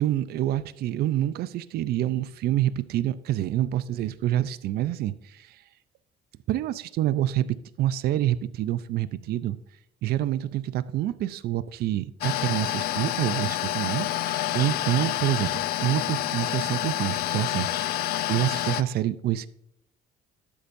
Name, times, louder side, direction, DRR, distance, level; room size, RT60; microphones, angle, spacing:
voice 1, 0.0-5.6 6.5-7.5 7.8-9.6 10.0-19.5, right 13 dB, 70° right, 0.5 m, -27 dB
sound 1, 12.2-18.8, left 13 dB, 65° left, 0.5 m, -28 dB
12.0 x 8.6 x 2.6 m
cardioid pair, 110°, 17 cm